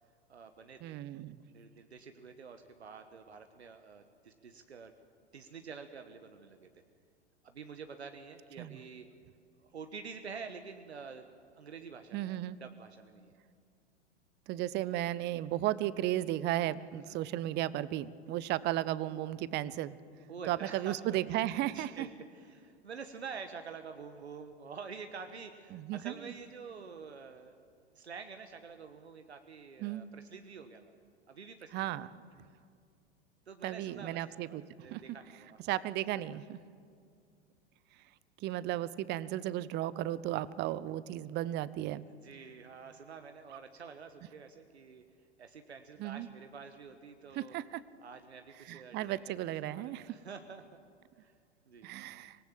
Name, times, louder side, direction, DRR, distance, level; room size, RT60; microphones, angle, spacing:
voice 1, 0.3-1.0 1.5-4.9 5.3-6.7 7.4-9.0 9.7-11.3 11.5-13.3 16.9-17.2 20.3-21.0 21.7-27.6 27.9-30.8 31.3-31.7 33.5-35.6 42.2-45.0 45.4-47.6 48.0-49.3 49.7-50.6 51.2-51.3 51.7-51.9, right 5 dB, 75° right, 7 dB, 1.3 m, -48 dB
voice 2, 0.8-1.4 8.6-8.8 12.1-12.6 14.5-20.0 20.5-22.1 25.7-26.1 29.8-30.0 31.7-32.1 33.6-34.6 34.9-35.0 35.7-36.6 38.4-42.1 46.0-46.3 47.3-47.8 48.6-50.1 51.8-52.4, right 14 dB, 30° right, 18 dB, 0.8 m, -34 dB
25.5 x 18.5 x 7.6 m, 2.2 s
figure-of-eight pair, 95°, 33 cm